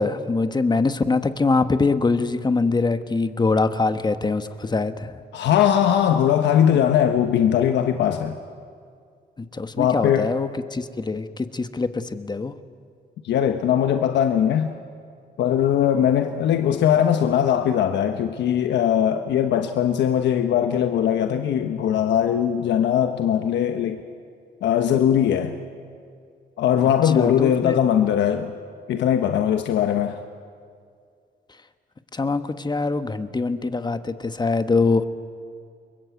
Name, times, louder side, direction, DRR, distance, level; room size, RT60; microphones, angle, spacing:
voice 1, 0.0-5.1 9.5-12.5 27.1-27.8 32.1-35.0, left 3 dB, 25° left, 10 dB, 1.4 m, -23 dB
voice 2, 5.3-8.4 9.8-10.3 13.2-14.7 15.4-24.0 24.6-25.6 26.6-28.5 28.9-30.2, left 9 dB, 90° left, 6 dB, 1.2 m, -20 dB
29.5 x 22.5 x 8.4 m, 2.2 s
cardioid pair, 100°, 18 cm